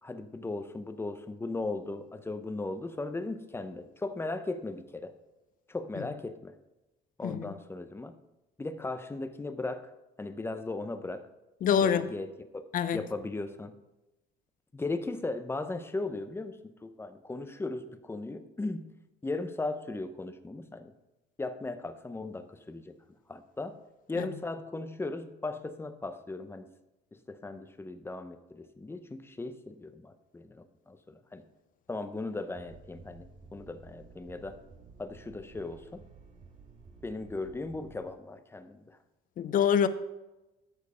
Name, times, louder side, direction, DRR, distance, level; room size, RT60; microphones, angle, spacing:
voice 1, 0.0-5.1 5.7-6.6 7.2-8.2 8.6-9.9 10.2-11.3 11.8-12.3 12.5-12.6 12.9-13.7 14.7-19.0 19.2-20.9 21.4-22.9 23.3-23.8 24.1-26.7 27.3-31.4 31.9-34.6 35.0-36.0 37.0-39.0, left 2 dB, 15° left, 0.7 m, -37 dB
voice 2, 7.2-7.5 11.6-12.1 12.7-13.1 24.1-24.3 39.4-39.9, left 8 dB, 55° left, 0.7 m, -25 dB
sound 1, 32.5-38.0, right 4 dB, 45° right, 2.2 m, -53 dB
13.5 x 4.5 x 4.9 m
cardioid pair, 110°, 17 cm